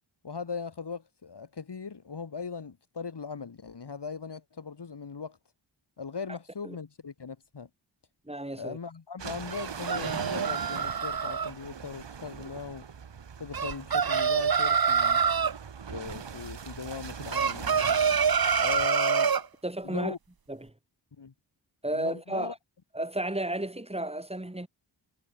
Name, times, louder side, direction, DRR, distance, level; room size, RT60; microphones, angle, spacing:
voice 1, 0.2-5.4 6.0-7.7 8.6-12.9 13.4-15.2 15.9-17.9 18.6-19.4 19.8-20.2 21.2-21.3 21.9-22.6, left 5 dB, 65° left, 3.0 m, -39 dB
voice 2, 8.3-8.8 19.6-20.1 20.5-20.7 21.8-22.5 22.9-24.7, right 1 dB, 15° right, 4.3 m, -33 dB
sound 1, 9.2-18.9, right 6 dB, 70° right, 1.8 m, -41 dB
sound 2, 9.5-11.5 13.5-15.6 17.3-19.5, right 6 dB, 50° right, 1.2 m, -26 dB
wide cardioid pair, 70°, 45 cm